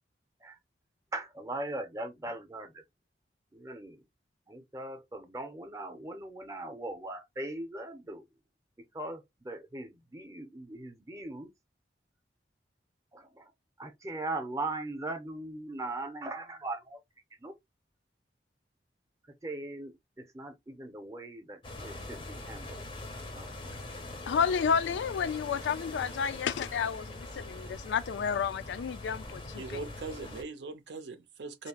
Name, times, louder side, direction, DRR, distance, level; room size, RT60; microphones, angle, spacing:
voice 1, 1.1-2.8 3.5-4.0 4.5-8.3 8.8-11.5 13.1-13.5 13.8-17.0 17.4-17.6 19.2-22.8 23.2-23.6, right 2 dB, 15° right, 0.6 m, -40 dB
sound 1, 21.6-30.4, left 2 dB, 25° left, 0.5 m, -43 dB
voice 2, 24.3-29.8, left 6 dB, 80° left, 0.3 m, -31 dB
voice 3, 29.5-31.7, right 3 dB, 80° right, 0.6 m, -41 dB
2.7 x 2.0 x 2.8 m
head